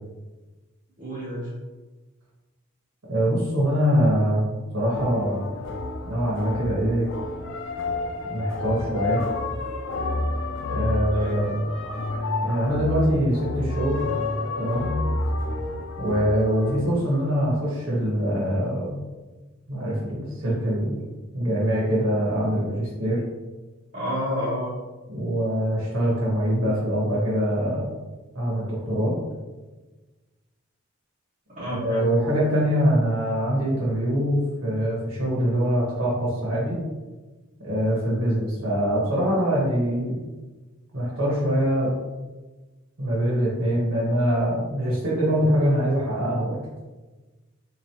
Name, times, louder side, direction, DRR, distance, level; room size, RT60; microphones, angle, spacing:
voice 1, 1.0-1.5 11.1-11.4 23.9-24.7 31.5-32.0, equal, 35° right, -12 dB, 1.3 m, -30 dB
voice 2, 3.1-4.5 4.7-5.4 6.0-7.1 8.3-9.2 10.7-11.6 12.4-14.0 14.6-14.9 16.0-19.0 19.7-21.1 21.3-23.2 25.1-27.9 28.3-29.2 31.8-36.8 37.6-40.2 40.9-41.9 43.0-46.6, equal, 90° right, -6 dB, 1.2 m, -23 dB
sound 1, 4.9-16.8, left 2 dB, 60° left, 0.4 m, -29 dB
3.8 x 3.1 x 2.9 m, 1.2 s
head